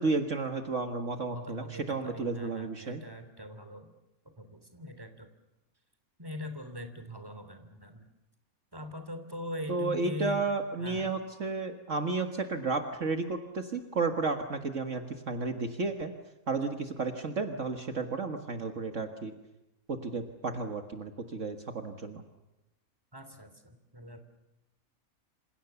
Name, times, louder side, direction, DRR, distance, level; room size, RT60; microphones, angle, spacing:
voice 1, 0.0-3.0 9.7-16.1 16.5-19.3 19.9-22.2, right 3 dB, 60° right, 6 dB, 1.9 m, -32 dB
voice 2, 1.3-3.9 4.4-5.3 6.2-8.0 8.7-10.5 10.8-11.1 23.1-24.2, left 1 dB, 15° right, 8 dB, 3.2 m, -42 dB
27.5 x 27.5 x 7.0 m, 0.98 s
omnidirectional pair, 1.5 m